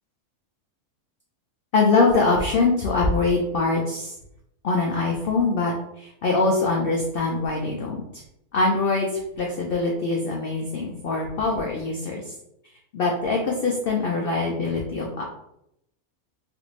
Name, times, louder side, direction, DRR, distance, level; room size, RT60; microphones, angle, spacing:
voice 1, 1.7-4.1 4.6-8.0 8.5-12.3 12.9-15.2, left 3 dB, 85° left, 0 dB, 0.5 m, -23 dB
3.3 x 2.5 x 3.1 m, 0.79 s
omnidirectional pair, 1.6 m